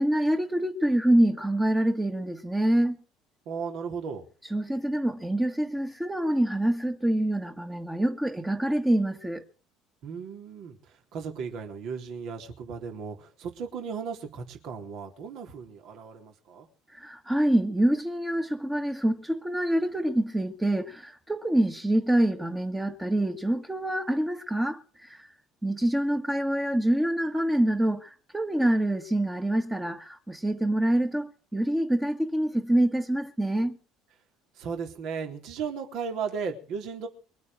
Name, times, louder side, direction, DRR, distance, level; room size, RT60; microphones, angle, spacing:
voice 1, 0.0-3.0 4.4-9.4 16.9-25.3 25.6-33.8, right 1 dB, 10° right, 1.7 m, -26 dB
voice 2, 3.5-4.2 10.0-10.8 11.1-16.7 34.6-37.1, right 6 dB, 60° right, 3.6 m, -35 dB
23.0 x 9.5 x 6.4 m
figure-of-eight pair, 60°, 0 cm